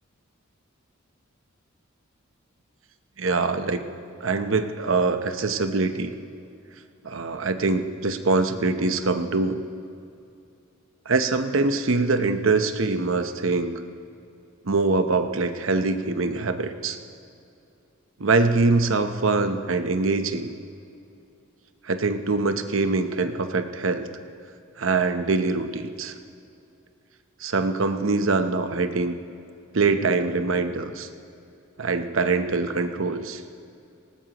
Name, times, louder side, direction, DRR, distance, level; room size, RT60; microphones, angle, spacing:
voice 1, 3.2-3.8 4.2-6.1 7.0-9.6 11.1-13.7 14.6-17.0 18.2-20.5 21.8-24.1 24.8-26.1 27.4-29.1 29.7-31.1 31.8-33.4, right 3 dB, 70° right, 8 dB, 0.9 m, -23 dB
19.0 x 18.5 x 3.0 m, 2.6 s
head